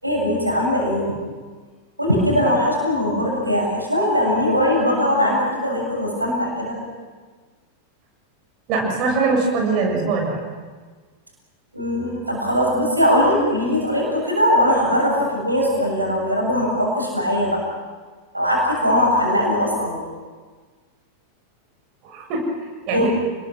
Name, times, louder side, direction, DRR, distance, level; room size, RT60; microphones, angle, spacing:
voice 1, 0.0-1.1 2.0-6.8 11.7-17.6 18.3-20.1 22.9-23.1, equal, 85° right, -2 dB, 7.0 m, -20 dB
voice 2, 8.7-10.4 22.1-22.4 22.9-23.1, right 4 dB, 40° right, 0 dB, 7.2 m, -21 dB
29.5 x 21.0 x 6.3 m, 1.4 s
figure-of-eight pair, 90°, 0 cm